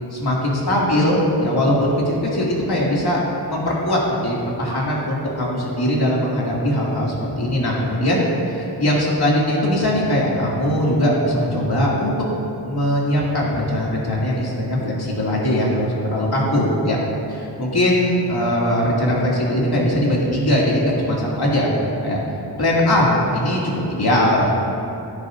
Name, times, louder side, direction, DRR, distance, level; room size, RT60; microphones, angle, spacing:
voice 1, 0.1-3.2 3.5-8.2 8.5-12.2 12.7-17.0 17.3-21.7 22.0-22.2 22.6-24.5, left 1 dB, 60° left, -5 dB, 2.4 m, -20 dB
15.5 x 9.6 x 2.6 m, 2.7 s
wide cardioid pair, 110°, 42 cm